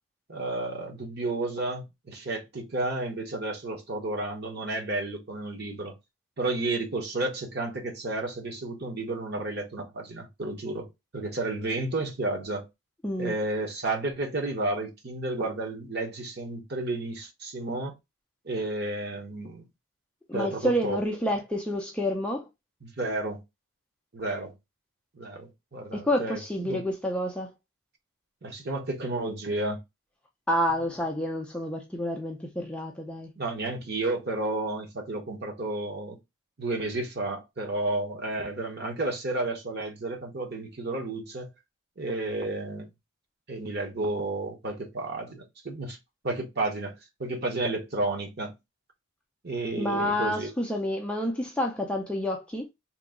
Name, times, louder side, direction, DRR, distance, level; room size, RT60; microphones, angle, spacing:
voice 1, 0.3-6.0 6.4-12.7 13.2-17.9 18.4-19.7 20.3-21.0 22.8-23.4 24.1-24.5 25.1-26.8 28.4-29.8 33.4-36.2 36.6-41.5 42.0-42.9 43.5-46.0 46.2-46.9 47.2-48.5 49.4-50.5, right 2 dB, 50° right, 1.0 m, -32 dB
voice 2, 13.0-13.4 20.3-22.5 25.9-27.5 30.5-33.3 49.8-52.7, equal, 5° left, 0.4 m, -29 dB
3.0 x 2.7 x 3.7 m
head